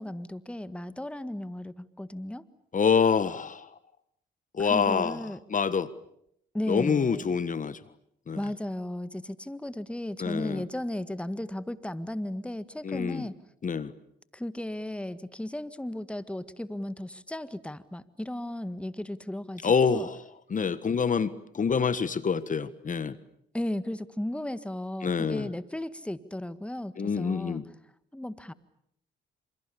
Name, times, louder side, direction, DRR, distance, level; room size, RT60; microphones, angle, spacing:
voice 1, 0.0-2.4 4.6-5.4 6.5-7.2 8.4-13.4 14.3-20.1 23.5-27.6 28.1-28.5, left 1 dB, 5° left, 13 dB, 1.7 m, -35 dB
voice 2, 2.7-3.7 4.5-5.2 5.5-5.9 6.7-7.8 8.3-8.4 10.2-10.6 12.8-13.2 13.6-13.9 19.6-20.2 20.5-23.2 25.0-25.5 27.0-27.6, left 6 dB, 40° left, 15 dB, 1.5 m, -26 dB
28.5 x 27.5 x 7.0 m, 0.72 s
supercardioid pair, 60°, 20 cm